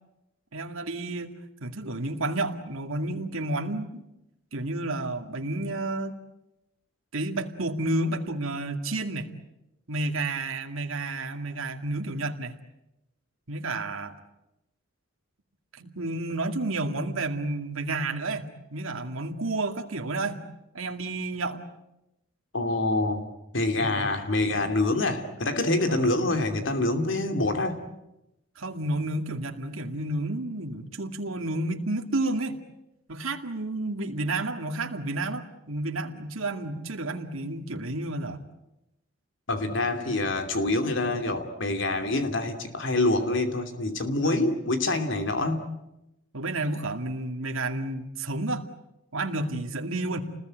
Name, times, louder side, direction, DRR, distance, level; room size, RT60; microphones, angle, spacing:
voice 1, 0.5-1.3 1.6-4.0 4.5-6.2 7.1-9.3 9.9-12.5 13.5-14.1 15.8-20.4 20.7-21.6 23.8-24.1 25.9-26.1 28.6-32.5 33.1-38.4 44.2-44.5 46.3-48.6 49.1-50.2, right 2 dB, 80° right, 4 dB, 2.3 m, -31 dB
voice 2, 22.5-23.2 23.5-27.8 39.5-45.7, left 2 dB, 60° left, 6 dB, 2.8 m, -26 dB
29.5 x 20.5 x 9.1 m, 0.91 s
head